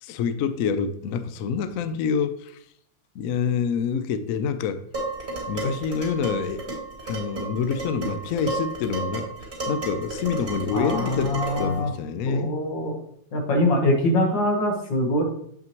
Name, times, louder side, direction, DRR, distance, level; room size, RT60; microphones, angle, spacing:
voice 1, 0.0-2.6 3.1-4.8 5.5-6.7 7.0-9.3 9.7-12.5, left 6 dB, 90° left, 0.7 m, -27 dB
Dishes pots and pans, 4.9-11.8, right 2 dB, 25° right, 2.6 m, -32 dB
voice 2, 10.7-11.9 12.3-13.0 13.3-15.2, left 1 dB, 75° left, 2.1 m, -23 dB
7.6 x 5.8 x 3.0 m
omnidirectional pair, 2.1 m